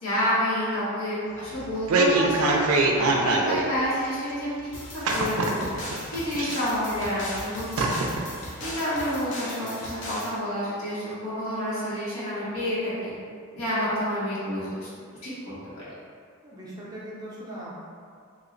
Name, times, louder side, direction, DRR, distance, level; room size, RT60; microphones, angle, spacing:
voice 1, 0.0-5.7 6.1-8.0 8.6-13.1 13.5-14.9 15.2-15.8, equal, 85° left, -10 dB, 1.2 m, -29 dB
sound 1, 1.5-3.6 4.0-4.1 5.0-6.0 6.3-7.0 7.3-7.4 7.8-8.2 8.6-8.7, right 3 dB, 75° right, 0.4 m, -23 dB
sound 2, 4.7-10.4, left 1 dB, 55° left, 0.6 m, -38 dB
voice 2, 16.4-17.7, right 1 dB, 20° right, -7 dB, 0.5 m, -39 dB
2.9 x 2.0 x 3.8 m, 2.2 s
head